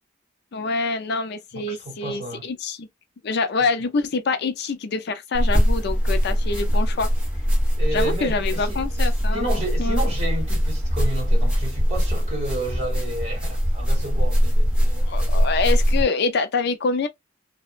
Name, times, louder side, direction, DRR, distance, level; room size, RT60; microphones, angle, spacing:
voice 1, 0.5-2.9 3.2-7.1 7.9-9.5 9.8-10.0 15.0-17.1, left 4 dB, 60° left, 0.4 m, -25 dB
voice 2, 1.5-2.5 7.8-8.8 9.3-15.5, right 2 dB, 35° right, 1.6 m, -31 dB
sound 1, 5.3-16.0, equal, 5° right, 1.0 m, -21 dB
2.8 x 2.1 x 2.4 m
head